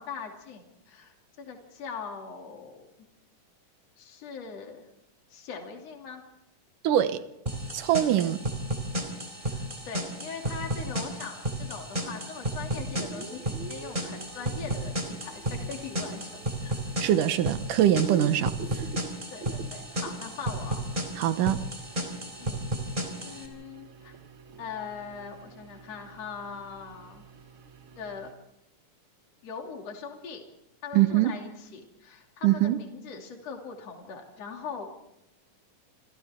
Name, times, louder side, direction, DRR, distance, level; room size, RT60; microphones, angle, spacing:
voice 1, 0.0-2.8 4.0-4.9 5.3-6.2 9.4-16.9 19.3-20.9 22.4-22.6 23.2-24.2 24.6-27.2 28.0-28.3 29.4-30.4 30.8-35.0, left 5 dB, 55° left, 3.8 m, -41 dB
voice 2, 6.8-7.2 7.7-8.4 17.0-18.8 21.2-21.6 30.9-31.3 32.4-32.8, right 12 dB, 85° right, 2.6 m, -23 dB
sound 1, 7.5-23.5, right 1 dB, 15° right, 4.0 m, -33 dB
sound 2, 13.0-28.3, right 5 dB, 50° right, 1.7 m, -46 dB
28.5 x 27.0 x 3.7 m
omnidirectional pair, 3.6 m